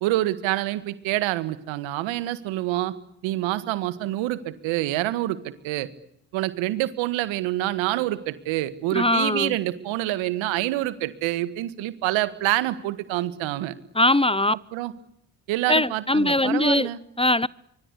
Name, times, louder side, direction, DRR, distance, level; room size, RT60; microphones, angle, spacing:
voice 1, 0.0-2.9 3.2-5.9 6.3-13.7 14.5-14.9 15.5-17.0, right 15 dB, 85° right, 1.9 m, -27 dB
voice 2, 8.9-9.5 14.0-14.5 15.7-16.9 17.2-17.5, left 1 dB, 10° left, 1.0 m, -21 dB
26.0 x 25.0 x 8.4 m
hypercardioid pair, 50°, 46 cm